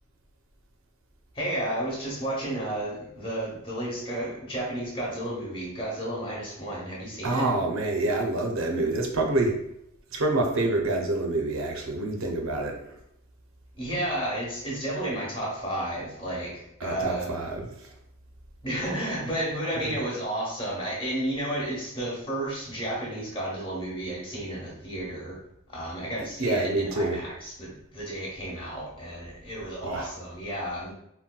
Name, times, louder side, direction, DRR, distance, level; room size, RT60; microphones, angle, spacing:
voice 1, 1.3-7.5 13.8-17.3 18.6-25.4 25.7-30.9, right 1 dB, 25° left, -4 dB, 0.8 m, -32 dB
voice 2, 7.2-9.6 10.1-12.8 16.8-17.9 19.8-20.0 26.4-27.2 29.8-30.1, right 2 dB, 85° right, 2 dB, 0.6 m, -27 dB
3.9 x 2.1 x 2.2 m, 0.79 s
head